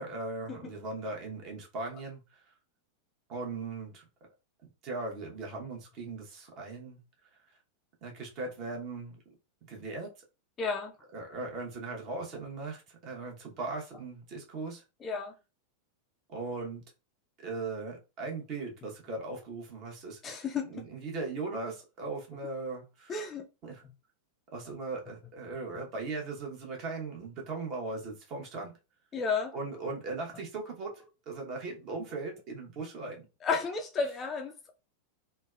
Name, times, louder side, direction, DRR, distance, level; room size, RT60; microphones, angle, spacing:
voice 1, 0.0-2.4 3.3-4.0 4.8-7.0 8.0-9.1 9.7-10.1 11.1-14.8 16.3-16.8 17.4-23.2 23.6-23.8 24.5-28.7 29.5-30.9 31.3-33.3, right 3 dB, 40° right, 1.0 m, -38 dB
voice 2, 10.6-10.9 11.3-11.4 15.0-15.3 20.2-20.7 23.1-23.4 29.1-29.5 33.4-34.7, left 5 dB, 25° left, 0.4 m, -32 dB
3.2 x 2.2 x 2.3 m
figure-of-eight pair, 90°, 0 cm